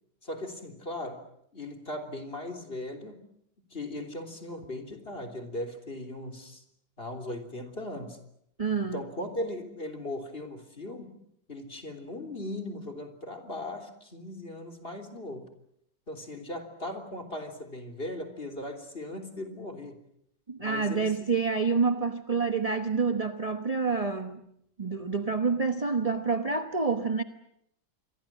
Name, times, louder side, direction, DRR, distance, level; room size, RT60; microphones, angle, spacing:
voice 1, 0.2-1.2 1.5-3.2 3.7-6.6 7.0-8.2 8.8-11.2 11.5-15.5 16.1-20.0 20.6-21.3, left 1 dB, 30° left, 3.7 m, -38 dB
voice 2, 8.6-9.0 20.5-24.4 24.8-27.2, right 4 dB, 25° right, 1.1 m, -28 dB
27.5 x 23.0 x 7.5 m
omnidirectional pair, 1.9 m